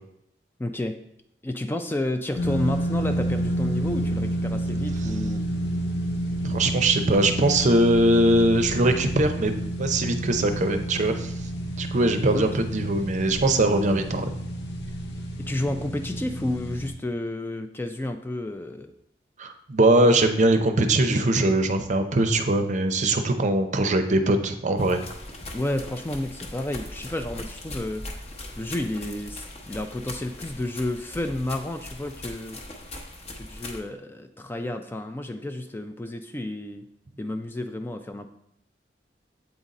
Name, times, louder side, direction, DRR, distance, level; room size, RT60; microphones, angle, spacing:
voice 1, 0.6-1.0 1.4-5.4 12.3-12.5 15.4-18.9 25.5-28.0 28.6-32.6 33.4-36.9 37.2-38.3, left 1 dB, 10° left, 7 dB, 0.3 m, -31 dB
sound 1, 2.3-16.9, right 1 dB, 70° left, 0.8 m, -29 dB
voice 2, 6.4-9.5 9.8-11.3 11.8-14.3 19.4-25.0, right 1 dB, 45° right, 7 dB, 0.6 m, -21 dB
sound 2, 24.8-33.8, left 1 dB, 40° left, 0.9 m, -40 dB
8.0 x 3.9 x 4.1 m, 0.76 s
head